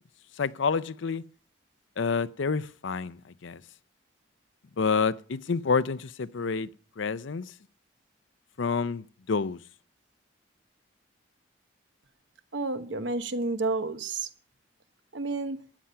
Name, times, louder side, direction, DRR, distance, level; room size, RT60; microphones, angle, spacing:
voice 1, 0.4-1.2 2.0-3.6 4.8-6.7 7.0-7.5 8.6-9.6, left 5 dB, 75° left, 0.6 m, -28 dB
voice 2, 12.5-14.3 15.1-15.6, right 3 dB, 70° right, 1.1 m, -30 dB
13.5 x 9.9 x 5.6 m
head